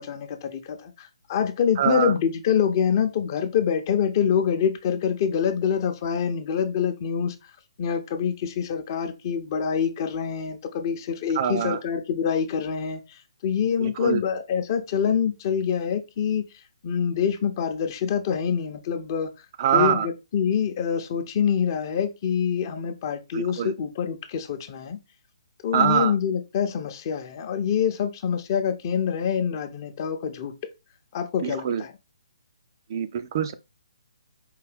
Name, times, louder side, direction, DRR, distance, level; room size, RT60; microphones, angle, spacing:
voice 1, 0.0-7.3 7.8-16.4 16.8-19.3 19.7-25.0 25.6-30.5 31.1-31.9, left 7 dB, 35° left, 0.7 m, -25 dB
voice 2, 1.8-2.1 11.3-11.8 13.8-14.2 19.6-20.1 23.3-23.7 25.7-26.1 31.4-31.8 32.9-33.5, right 9 dB, 40° right, 0.4 m, -24 dB
4.8 x 2.7 x 3.4 m
hypercardioid pair, 145°, 3 cm